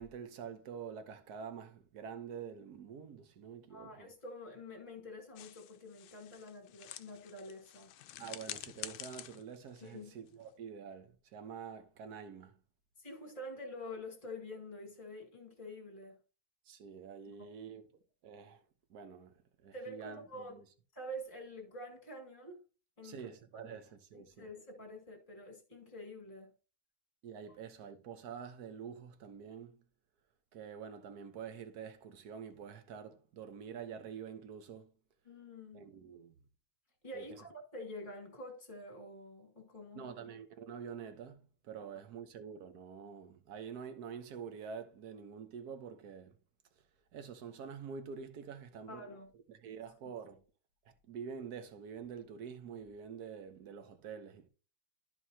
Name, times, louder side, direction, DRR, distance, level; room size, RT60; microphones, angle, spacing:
voice 1, 0.0-4.1 8.2-12.6 16.7-17.9 18.2-18.6 18.9-19.3 19.6-20.6 23.0-24.5 27.2-29.8 30.5-34.9 35.7-36.3 37.1-37.4 39.9-46.3 47.1-49.1 49.5-50.4 50.8-54.5, right 7 dB, 55° right, 1.4 m, -47 dB
voice 2, 3.7-7.9 9.8-10.1 13.0-16.2 17.3-17.5 19.7-20.6 20.9-22.6 23.0-23.3 24.1-26.5 35.2-35.9 37.0-40.1 41.8-41.9 48.9-49.3, left 1 dB, 25° left, 2.3 m, -47 dB
sound 1, 5.4-10.6, left 12 dB, 75° left, 1.0 m, -49 dB
13.0 x 4.6 x 2.8 m
omnidirectional pair, 2.3 m